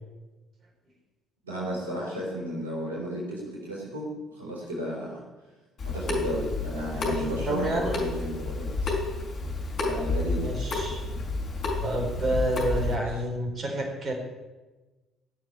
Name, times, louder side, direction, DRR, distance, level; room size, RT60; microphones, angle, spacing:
voice 1, 1.4-5.2 5.9-8.9 9.8-10.6 12.8-13.2, equal, 80° right, -3 dB, 3.9 m, -34 dB
Water tap faucet / Sink (filling or washing) / Drip, 5.8-13.0, left 3 dB, 45° left, 5.2 m, -30 dB
voice 2, 7.1-7.9 10.4-11.0 11.8-14.1, right 1 dB, 40° right, 1 dB, 4.5 m, -29 dB
17.0 x 7.2 x 9.9 m, 1.2 s
figure-of-eight pair, 50°, 0 cm